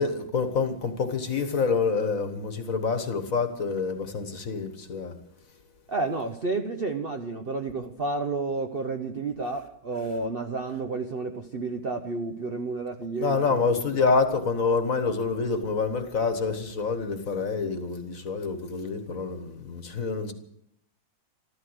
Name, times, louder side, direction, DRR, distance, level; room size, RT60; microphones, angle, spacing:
voice 1, 0.0-5.1 13.2-20.3, left 4 dB, 45° left, 1.6 m, -27 dB
voice 2, 5.9-14.1, right 3 dB, 45° right, 0.8 m, -31 dB
13.5 x 13.5 x 8.0 m
omnidirectional pair, 2.2 m